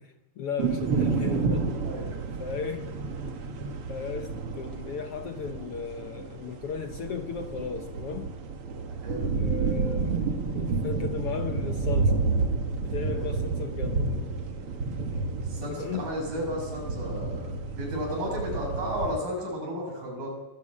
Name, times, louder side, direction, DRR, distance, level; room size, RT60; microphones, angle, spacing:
voice 1, 0.0-1.7 2.4-3.0 3.9-8.4 9.3-10.3 10.5-12.3 12.8-14.1 15.1-15.3 15.6-16.1, left 6 dB, 80° left, 7 dB, 1.3 m, -36 dB
sound 1, 0.6-19.2, right 4 dB, 45° right, 2.1 m, -30 dB
voice 2, 1.8-2.2 3.4-3.6 9.0-9.3 13.1-13.3 15.4-20.3, equal, 70° right, -2 dB, 8.4 m, -33 dB
26.5 x 19.0 x 8.8 m, 1.1 s
omnidirectional pair, 4.2 m